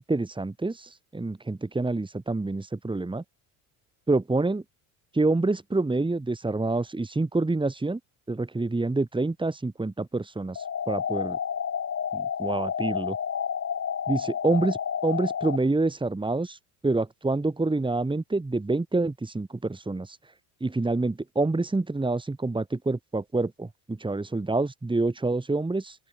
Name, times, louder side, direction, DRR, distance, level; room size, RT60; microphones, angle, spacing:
voice 1, 0.0-3.2 4.1-4.6 5.1-8.0 8.3-11.4 12.1-13.2 14.1-16.6 16.8-20.2 20.6-26.0, right 2 dB, 10° right, 4.5 m, -27 dB
sound 1, 10.6-15.6, left 8 dB, 30° left, 3.3 m, -30 dB
open air
cardioid pair, 120°, 44 cm